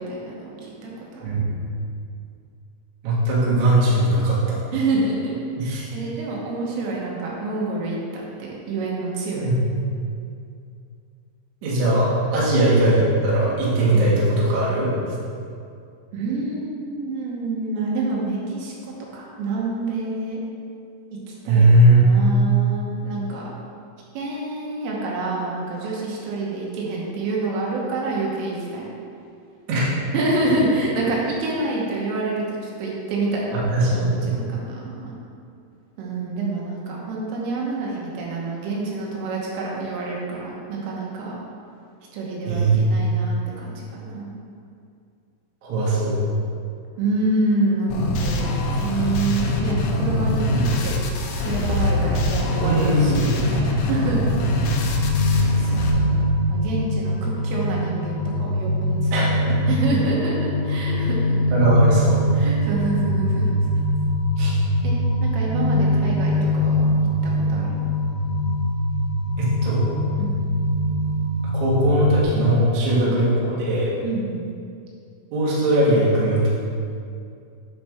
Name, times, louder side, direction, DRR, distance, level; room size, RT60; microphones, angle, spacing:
voice 1, 0.0-1.3 4.7-9.5 13.9-14.1 16.1-20.4 21.5-23.4 24.1-28.9 30.1-35.2 36.0-41.4 42.1-44.4 47.0-50.9 51.4-54.9 55.6-56.2 56.5-61.4 62.3-63.5 64.6-65.0 65.2-66.9 67.2-67.8 70.2-70.3 73.0-73.1 74.0-74.4, right 2 dB, 85° right, -3 dB, 3.8 m, -27 dB
voice 2, 1.2-1.5 3.0-4.6 5.6-5.9 9.3-9.7 11.6-14.9 21.5-22.1 29.7-29.9 33.7-34.3 42.5-42.9 45.6-46.2 50.5-50.6 52.6-53.3 59.1-59.3 61.5-62.2 64.4-64.5 69.4-69.9 71.4-73.9 75.3-76.5, right 1 dB, 55° right, -7 dB, 2.3 m, -19 dB
sound 1, 47.9-55.9, left 1 dB, 80° left, 3.0 m, -23 dB
sound 2, 54.8-72.2, equal, 60° left, 2.5 m, -22 dB
10.0 x 5.6 x 3.5 m, 2.4 s
omnidirectional pair, 5.7 m